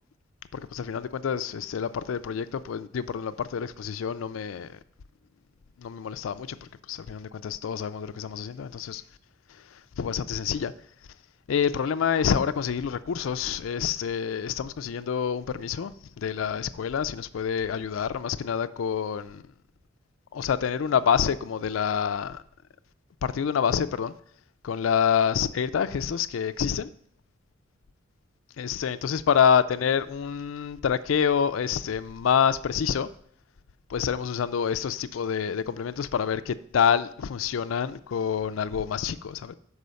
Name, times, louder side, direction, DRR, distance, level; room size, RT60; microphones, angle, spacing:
voice 1, 0.5-4.8 5.8-6.6 6.9-9.0 10.0-10.7 11.5-15.9 16.2-19.4 20.3-22.4 23.2-24.1 24.6-26.9 28.6-33.1 33.9-39.5, left 7 dB, 80° left, 0.4 m, -27 dB
6.3 x 4.8 x 6.8 m
head